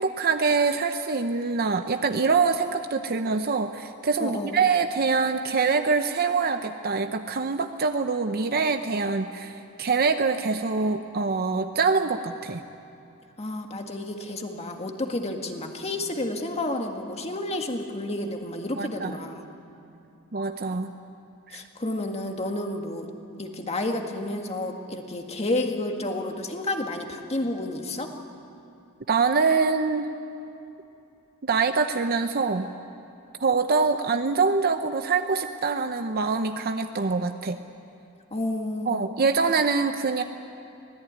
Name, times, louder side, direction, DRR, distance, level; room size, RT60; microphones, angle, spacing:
voice 1, 0.0-12.6 18.8-19.1 20.3-20.9 21.5-21.6 29.1-30.1 31.4-32.7 33.4-37.6 38.9-40.2, right 4 dB, 45° right, 7 dB, 0.7 m, -24 dB
voice 2, 4.2-4.6 13.4-19.5 21.5-23.1 23.4-28.1 38.3-39.0, left 1 dB, 30° left, 3 dB, 1.9 m, -30 dB
24.5 x 17.5 x 9.5 m, 2.7 s
head